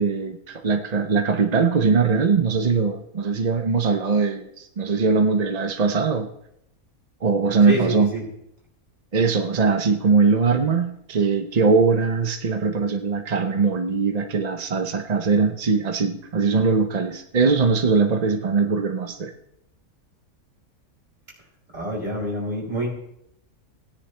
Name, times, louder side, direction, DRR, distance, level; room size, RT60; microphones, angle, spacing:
voice 1, 0.0-6.3 7.2-8.1 9.1-19.3, right 4 dB, 45° right, 6 dB, 0.5 m, -21 dB
voice 2, 7.6-8.2 21.7-22.9, right 1 dB, 30° right, -4 dB, 4.6 m, -26 dB
17.5 x 9.9 x 3.3 m, 0.78 s
omnidirectional pair, 1.6 m